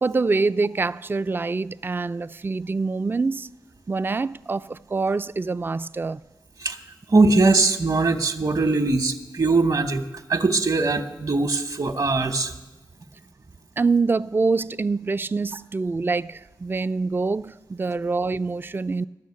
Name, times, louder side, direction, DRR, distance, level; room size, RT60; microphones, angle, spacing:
voice 1, 0.0-3.5 3.9-6.2 13.8-19.1, right 4 dB, 30° right, 0.3 m, -25 dB
voice 2, 7.1-10.0 10.3-12.5, right 3 dB, 55° right, 1.0 m, -21 dB
12.5 x 6.4 x 8.5 m
cardioid pair, 40°, 8 cm